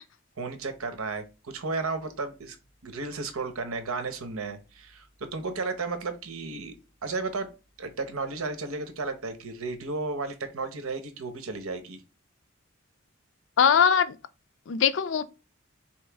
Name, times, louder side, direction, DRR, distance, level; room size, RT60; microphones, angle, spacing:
voice 1, 0.4-2.6 2.8-6.7 7.0-7.5 7.8-12.0, right 3 dB, 90° right, 0.9 m, -33 dB
voice 2, 13.6-14.2 14.7-15.2, left 7 dB, 60° left, 0.4 m, -21 dB
4.2 x 3.1 x 3.4 m
head